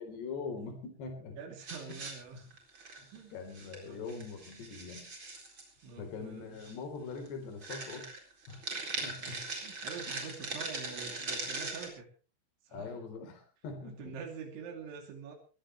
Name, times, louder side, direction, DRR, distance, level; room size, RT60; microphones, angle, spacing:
voice 1, 0.0-1.4 1.9-2.0 3.0-5.1 6.0-8.1 8.5-8.6 9.0-9.3 12.7-14.2, left 4 dB, 65° left, 6 dB, 5.7 m, -42 dB
voice 2, 1.4-2.5 3.1-3.4 3.8-4.0 5.8-6.6 9.2-12.1 12.6-13.0 13.8-15.4, right 5 dB, 80° right, 3 dB, 5.2 m, -46 dB
sound 1, 1.6-3.2 3.5-3.8 4.1-5.7 6.6-6.7 7.1-7.3 7.6-11.9, right 3 dB, 25° right, 4.5 m, -40 dB
22.5 x 16.5 x 3.2 m, 0.35 s
omnidirectional pair, 5.3 m